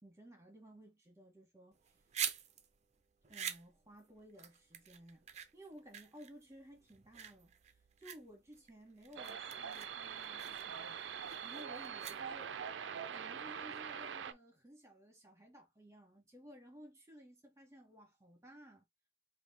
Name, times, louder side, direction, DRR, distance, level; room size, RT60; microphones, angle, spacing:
voice 1, 0.0-1.8 3.3-5.3 5.5-11.0 11.4-12.8 13.1-18.8, equal, 15° right, 1.6 m, -57 dB
sound 1, 1.7-12.6, right 9 dB, 40° right, 0.6 m, -46 dB
sound 2, 9.2-14.3, right 7 dB, 90° right, 0.5 m, -44 dB
3.5 x 2.7 x 4.1 m
head